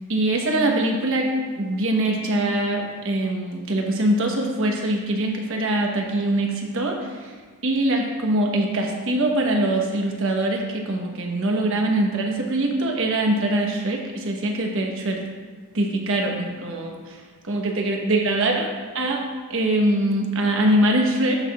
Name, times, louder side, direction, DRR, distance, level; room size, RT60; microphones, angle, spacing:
voice 1, 0.1-1.3 1.6-7.0 7.6-15.2 15.7-17.2 17.5-18.7 18.9-19.2 19.5-21.4, right 1 dB, 60° right, 2 dB, 1.1 m, -23 dB
12.5 x 5.8 x 2.4 m, 1.5 s
head